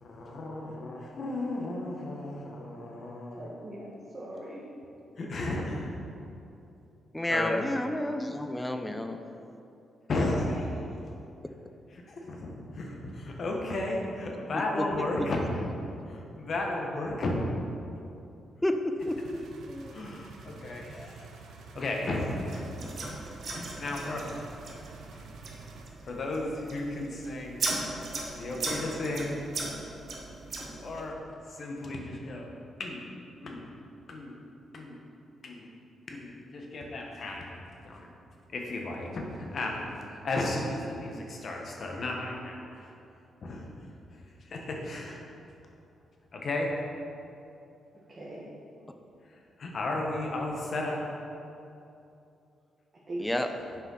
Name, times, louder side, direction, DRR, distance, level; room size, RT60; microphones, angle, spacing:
voice 1, 0.0-3.4 5.2-5.9 7.2-7.6 10.1-10.8 12.1-15.6 16.1-17.4 19.9-21.3 21.7-22.6 23.5-24.3 25.1-25.2 26.0-27.6 28.4-29.4 30.8-31.2 31.5-32.5 32.8-33.0 33.4-33.7 34.1-34.4 34.7-35.0 35.4-35.7 36.1-37.6 37.8-38.1 38.5-42.9 43.4-43.6 44.1-45.2 46.3-46.7 49.3-51.0, left 2 dB, 60° left, 0 dB, 1.3 m, -34 dB
voice 2, 3.4-4.7 47.9-48.5 53.1-53.5, right 1 dB, 40° right, -6 dB, 1.5 m, -40 dB
voice 3, 7.1-9.2 14.5-15.3 18.6-19.4 19.7-20.0 22.8-22.9 53.2-53.5, left 1 dB, 10° left, 6 dB, 0.6 m, -31 dB
sound 1, 19.0-25.9, right 3 dB, 80° right, 0.7 m, -48 dB
sound 2, 22.5-31.1, right 3 dB, 60° right, 1.1 m, -38 dB
6.5 x 4.9 x 5.6 m, 2.7 s
supercardioid pair, 60°, 0 cm